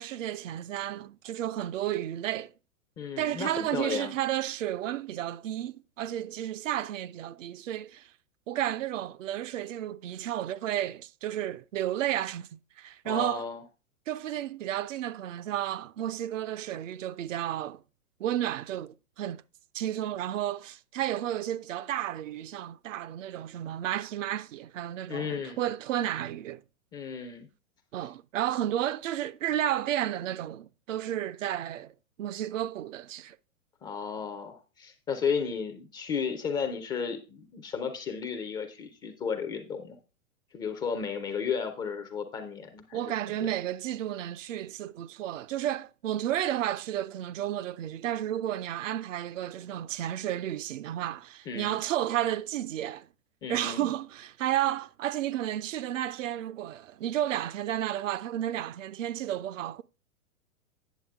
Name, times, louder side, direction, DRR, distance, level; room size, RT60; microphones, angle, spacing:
voice 1, 0.0-2.5 3.2-8.1 8.5-13.4 14.1-17.8 18.2-19.4 19.7-26.6 27.9-33.4 42.9-53.1 53.5-59.8, right 12 dB, 65° right, 0.6 m, -32 dB
voice 2, 3.0-4.1 13.0-13.6 25.1-25.6 26.9-27.5 33.8-40.0 40.5-43.5 51.5-51.8 53.4-53.9, left 6 dB, 10° left, 0.3 m, -34 dB
9.2 x 7.0 x 3.4 m
hypercardioid pair, 115°, 42 cm